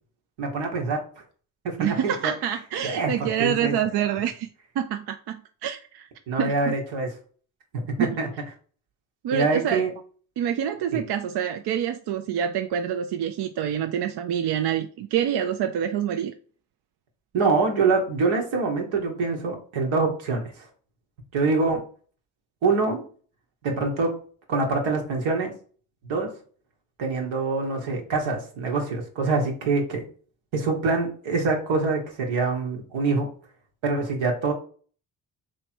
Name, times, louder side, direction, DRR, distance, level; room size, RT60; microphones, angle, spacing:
voice 1, 0.4-1.0 1.6-2.3 2.8-3.7 6.3-7.1 7.7-8.3 9.3-9.9 10.9-11.0 17.3-20.7 21.3-21.8 22.6-23.1 23.6-24.2 24.5-25.5 26.0-26.3 27.0-30.0 30.5-33.3 33.8-34.5, right 3 dB, 80° right, 1.3 m, -25 dB
voice 2, 1.8-4.5 4.8-6.1 6.4-6.7 8.0-8.1 9.2-9.9 10.4-16.3, right 9 dB, 60° right, 0.5 m, -27 dB
3.2 x 3.1 x 4.3 m
supercardioid pair, 50°, 45 cm